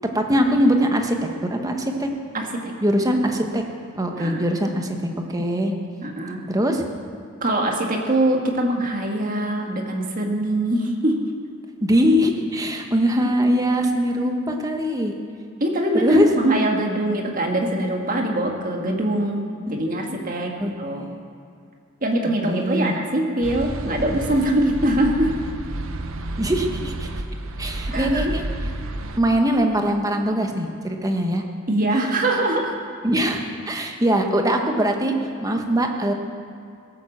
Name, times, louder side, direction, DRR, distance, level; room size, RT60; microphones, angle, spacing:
voice 1, 0.1-1.2 1.4-2.1 2.8-3.6 4.0-5.7 6.5-6.8 11.8-15.1 15.9-16.3 19.7-19.8 20.6-20.7 21.0-21.1 22.4-23.0 26.4-27.1 27.6-28.4 29.2-31.4 33.0-35.1 35.4-36.1, equal, 15° right, 3 dB, 1.2 m, -22 dB
voice 2, 2.3-2.7 4.2-4.4 6.0-6.4 7.4-11.2 15.6-21.1 22.0-25.4 27.9-28.4 31.7-32.7, right 1 dB, 40° right, 1 dB, 1.7 m, -23 dB
sound 1, 23.4-29.2, right 1 dB, 80° right, 0.9 m, -30 dB
17.0 x 9.1 x 7.3 m, 2.3 s
head